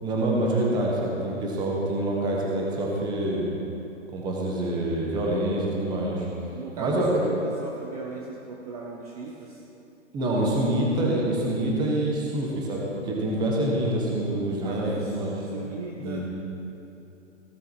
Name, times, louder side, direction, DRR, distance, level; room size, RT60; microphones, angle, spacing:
voice 1, 0.0-3.5 4.1-6.3 6.8-7.3 10.1-15.4 16.0-16.2, right 1 dB, 10° right, -2 dB, 1.2 m, -26 dB
voice 2, 6.5-9.6 14.6-16.2, right 4 dB, 30° right, 0 dB, 0.8 m, -38 dB
16.0 x 6.8 x 4.8 m, 2.9 s
hypercardioid pair, 155°, 38 cm